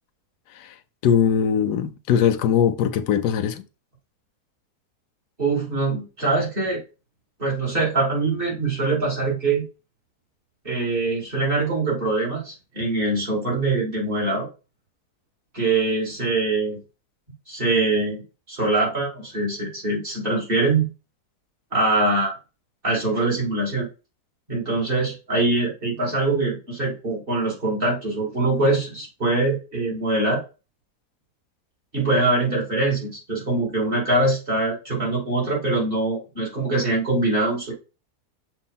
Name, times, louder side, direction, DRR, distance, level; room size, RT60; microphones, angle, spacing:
voice 1, 1.0-3.6, left 8 dB, 85° left, 1.2 m, -21 dB
voice 2, 5.4-6.8 7.4-9.6 10.6-14.5 15.5-16.8 17.5-18.2 18.5-20.9 21.7-22.3 22.8-23.9 24.5-30.4 31.9-37.7, right 2 dB, 35° right, 3.0 m, -23 dB
6.9 x 2.7 x 5.5 m
omnidirectional pair, 1.7 m